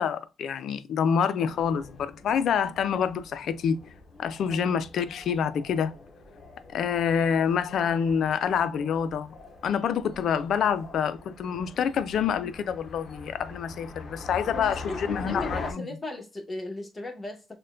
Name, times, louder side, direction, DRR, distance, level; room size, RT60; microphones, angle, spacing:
voice 1, 0.0-3.8 4.2-5.9 6.7-9.3 9.6-15.9, left 7 dB, 60° left, 0.4 m, -27 dB
sound 1, 1.4-15.7, left 3 dB, 35° left, 0.8 m, -43 dB
voice 2, 14.4-17.5, left 2 dB, 20° left, 1.0 m, -37 dB
6.5 x 2.2 x 2.4 m
cardioid pair, 135°, 0 cm